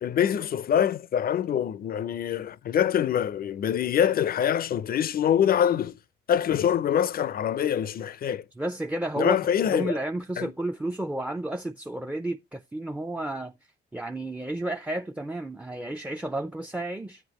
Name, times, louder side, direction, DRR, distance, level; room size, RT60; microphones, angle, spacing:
voice 1, 0.0-6.0 6.3-8.4 9.2-10.0 10.4-10.5, left 9 dB, 50° left, 0.5 m, -25 dB
voice 2, 8.6-9.4 9.7-13.5 13.9-17.2, right 1 dB, 5° right, 0.4 m, -32 dB
9.1 x 8.1 x 2.9 m
cardioid pair, 90°, 20 cm